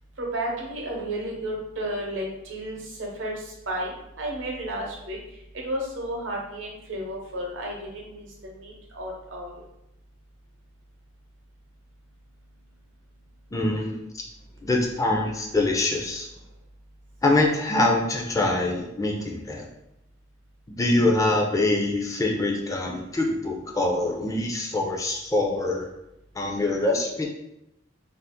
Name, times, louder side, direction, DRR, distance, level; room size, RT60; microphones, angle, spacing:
voice 1, 0.2-5.2 5.6-9.6, right 1 dB, 75° right, -1 dB, 0.8 m, -32 dB
voice 2, 13.5-13.9 14.6-16.3 17.2-19.7 20.8-25.9 26.4-27.2, left 2 dB, 15° left, 0 dB, 0.4 m, -24 dB
2.6 x 2.4 x 3.5 m, 0.85 s
head